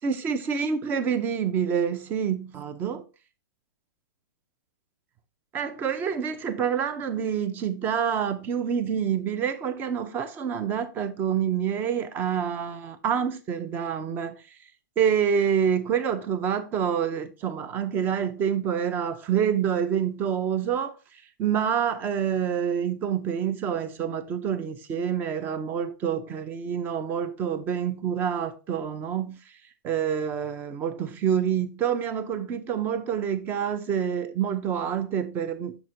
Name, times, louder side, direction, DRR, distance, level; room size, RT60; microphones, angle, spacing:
voice 1, 0.0-3.0 5.5-14.3 15.0-20.9 21.4-29.4 29.8-35.8, right 8 dB, 20° right, 0.5 m, -27 dB
6.6 x 6.0 x 2.6 m
hypercardioid pair, 155°, 11 cm